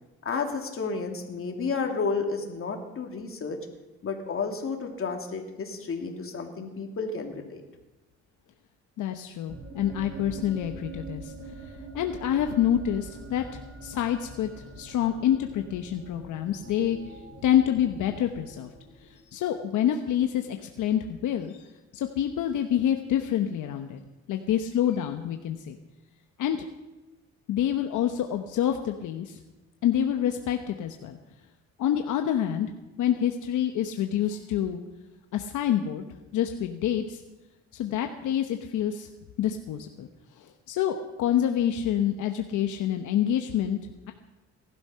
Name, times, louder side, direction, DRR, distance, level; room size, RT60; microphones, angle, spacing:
voice 1, 0.2-3.6 4.0-7.6, left 4 dB, 45° left, 3 dB, 2.8 m, -31 dB
voice 2, 9.0-11.3 11.9-14.5 14.8-18.7 19.0-21.6 21.9-24.0 24.3-25.8 26.4-26.6 27.5-29.4 29.8-31.2 31.8-32.7 33.0-34.8 35.3-36.0 36.3-37.2 37.7-39.1 39.4-40.1 40.4-43.8, left 10 dB, 80° left, 5 dB, 1.0 m, -27 dB
sound 1, 9.5-19.3, right 2 dB, 45° right, 3.1 m, -44 dB
18.5 x 12.5 x 5.7 m, 1.1 s
cardioid pair, 90°, 30 cm